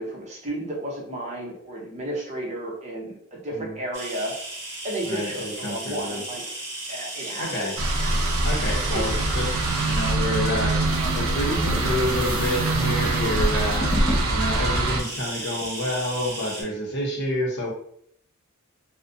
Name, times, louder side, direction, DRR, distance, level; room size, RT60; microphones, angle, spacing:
voice 1, 0.0-4.3 4.8-6.4 6.9-7.7 8.9-9.1, right 1 dB, 35° right, -3 dB, 0.7 m, -32 dB
sound 1, 3.9-16.6, right 2 dB, 15° right, 1.0 m, -36 dB
voice 2, 5.0-6.2 7.4-7.7 8.4-9.5 9.9-10.7 11.1-13.9 14.3-17.7, left 1 dB, 55° left, -2 dB, 0.7 m, -28 dB
sound 2, 7.8-15.0, right 2 dB, 70° right, 0.5 m, -24 dB
sound 3, 10.9-15.7, equal, 25° left, 0.5 m, -34 dB
2.4 x 2.1 x 2.6 m, 0.65 s
head